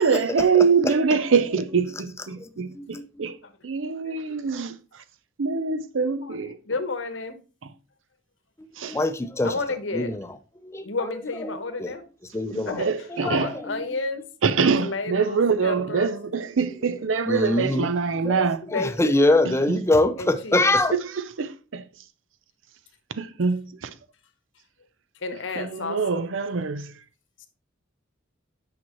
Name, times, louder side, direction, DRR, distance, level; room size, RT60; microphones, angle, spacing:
voice 1, 0.0-3.4 3.6-4.8 5.4-6.6 8.8-9.0 12.5-13.5 14.4-18.6 19.7-19.8 20.9-21.8 23.1-23.9 25.6-26.9, right 5 dB, 85° right, 0.6 m, -24 dB
voice 2, 0.5-0.9 2.4-2.5 2.7-3.2 8.6-9.5 9.9-10.3 10.6-10.9 11.4-11.9 12.3-12.8 13.1-13.7 17.3-17.9 18.2-20.9, left 2 dB, 15° left, 0.6 m, -24 dB
voice 3, 4.0-4.5 6.1-6.4 6.6-7.4 9.4-10.1 10.8-12.0 12.6-12.9 13.2-14.2 14.8-16.1 18.6-19.2 20.2-20.7 25.2-26.2 27.4-27.5, left 3 dB, 75° left, 1.1 m, -31 dB
8.7 x 6.0 x 3.1 m
head